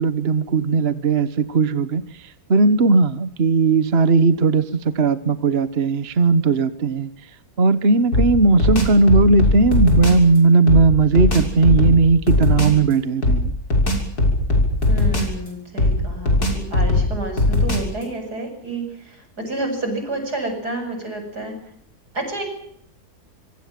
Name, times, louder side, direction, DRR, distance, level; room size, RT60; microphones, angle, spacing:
voice 1, 0.0-7.1 7.6-13.5, right 3 dB, 40° right, 13 dB, 1.4 m, -17 dB
sound 1, 8.1-10.3 10.7-12.8 13.2-15.5 15.8-18.0, left 2 dB, 75° left, 7.3 m, -19 dB
voice 2, 14.9-21.6 22.1-22.4, right 2 dB, 85° right, 5 dB, 8.7 m, -29 dB
26.5 x 23.5 x 7.7 m, 0.71 s
omnidirectional pair, 1.7 m